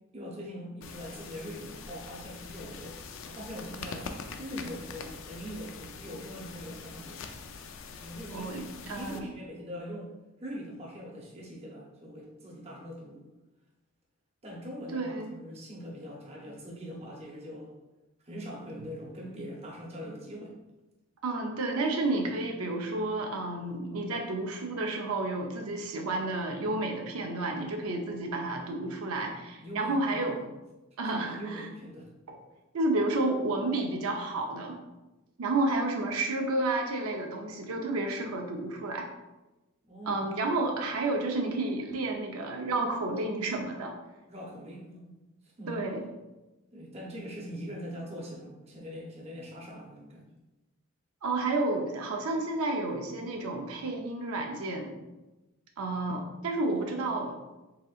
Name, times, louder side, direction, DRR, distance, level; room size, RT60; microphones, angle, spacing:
voice 1, 0.1-4.1 4.4-7.2 8.0-10.1 10.4-13.2 14.4-17.7 18.2-20.6 29.6-30.5 31.1-32.1 39.8-40.3 44.3-45.2 45.6-45.8 46.7-50.2 56.7-57.0, equal, 30° right, -2 dB, 0.8 m, -42 dB
sound 1, 0.8-9.2, left 5 dB, 60° left, 0.3 m, -44 dB
voice 2, 8.3-9.3 14.9-15.3 21.2-30.4 31.0-31.7 32.3-32.4 32.7-34.8 35.4-39.1 40.1-43.9 45.7-46.0 51.2-55.0 55.8-57.4, right 2 dB, 80° right, 2 dB, 0.5 m, -31 dB
4.1 x 3.6 x 2.4 m, 1.0 s
head